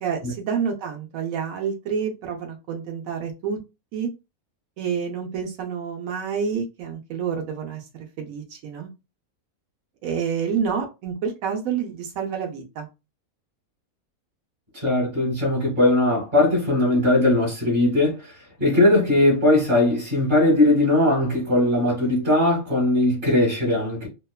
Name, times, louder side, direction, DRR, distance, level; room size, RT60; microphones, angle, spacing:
voice 1, 0.0-3.6 3.9-4.1 4.8-8.9 10.0-12.9, right 6 dB, 75° right, 1.0 m, -28 dB
voice 2, 14.7-18.3 18.6-24.1, left 1 dB, 35° right, 1.2 m, -19 dB
2.8 x 2.2 x 2.2 m
omnidirectional pair, 1.5 m